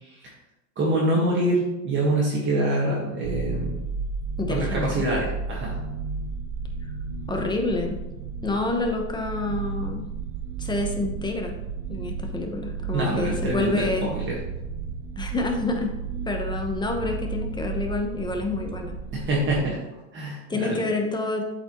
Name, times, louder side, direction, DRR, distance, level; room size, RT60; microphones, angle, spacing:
voice 1, 0.0-0.3 0.8-3.8 4.5-5.8 12.9-14.4 19.1-19.8 20.1-20.8, right 1 dB, 30° right, -4 dB, 1.5 m, -25 dB
sound 1, 3.2-19.6, right 4 dB, 65° right, 0.8 m, -33 dB
voice 2, 4.4-5.0 7.3-8.0 8.4-10.0 10.6-11.5 11.9-14.1 15.2-15.9 16.3-18.9 20.5-21.4, left 2 dB, 10° left, 3 dB, 0.8 m, -28 dB
8.0 x 4.8 x 3.0 m, 0.99 s
supercardioid pair, 130°, 38 cm